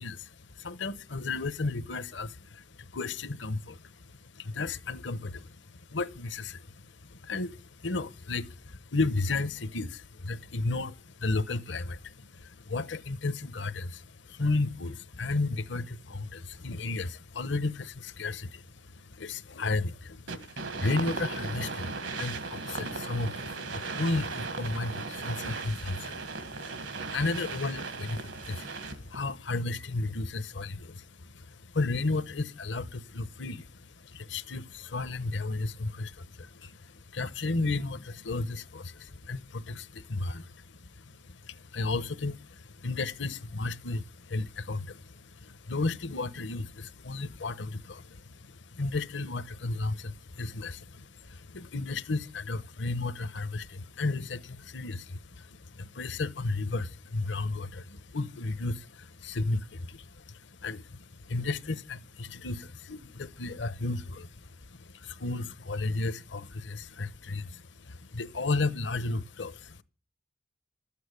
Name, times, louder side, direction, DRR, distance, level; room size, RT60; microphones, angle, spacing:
voice 1, 0.0-69.8, left 3 dB, 70° left, 0.9 m, -34 dB
sound 1, 20.3-29.2, right 3 dB, 75° right, 1.6 m, -37 dB
13.0 x 8.7 x 9.8 m
head